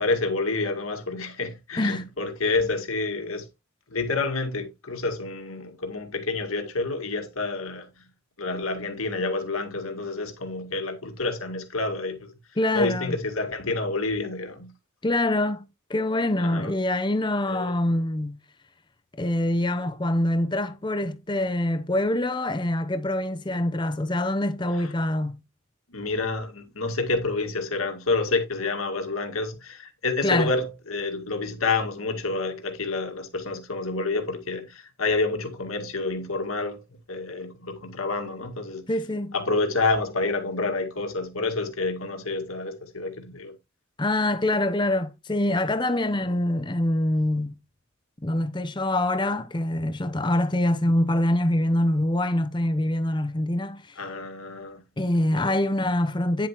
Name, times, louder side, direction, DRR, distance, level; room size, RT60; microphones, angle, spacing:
voice 1, 0.0-3.5 3.9-7.9 8.4-12.3 12.7-14.7 16.4-16.7 17.5-17.8 24.7-24.9 25.9-38.8 39.3-43.5 46.2-46.3 54.0-54.8 55.3-55.6, left 3 dB, 80° left, 2.0 m, -28 dB
voice 2, 1.8-2.1 12.6-13.1 15.0-18.4 19.2-25.4 30.2-30.5 38.9-39.4 44.0-47.6 48.2-53.9 55.0-56.5, left 1 dB, 20° left, 0.7 m, -25 dB
9.7 x 7.4 x 3.0 m
head